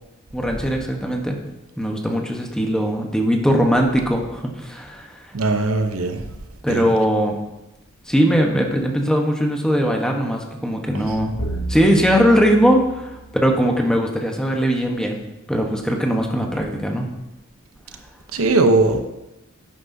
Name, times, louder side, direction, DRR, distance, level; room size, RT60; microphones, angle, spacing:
voice 1, 0.3-1.4 1.8-5.3 6.6-7.4 8.1-11.3 11.7-15.2 15.5-17.1, equal, 5° left, 1 dB, 1.1 m, -20 dB
voice 2, 5.3-6.2 6.7-6.9 18.3-19.0, right 3 dB, 80° right, 7 dB, 0.9 m, -19 dB
sound 1, 11.4-13.9, right 2 dB, 85° left, 1.5 m, -32 dB
11.0 x 9.7 x 2.8 m, 0.96 s
head